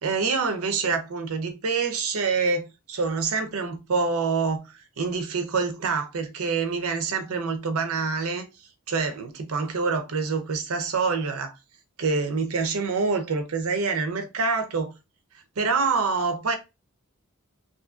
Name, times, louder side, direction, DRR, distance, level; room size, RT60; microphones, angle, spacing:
voice 1, 0.0-8.4 8.9-11.5 12.0-14.9 15.6-16.6, right 4 dB, 90° right, 0.6 m, -26 dB
2.7 x 2.5 x 2.3 m
head